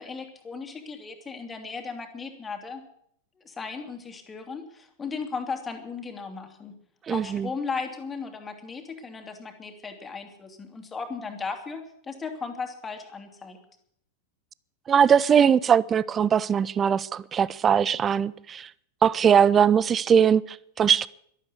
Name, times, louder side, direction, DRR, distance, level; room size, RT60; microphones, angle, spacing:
voice 1, 0.0-2.8 3.4-6.7 7.1-13.6, left 5 dB, 15° left, 2.6 m, -36 dB
voice 2, 7.1-7.5 14.9-18.7 19.0-21.1, right 8 dB, 25° right, 0.5 m, -21 dB
12.5 x 12.5 x 8.3 m
figure-of-eight pair, 90°, 0 cm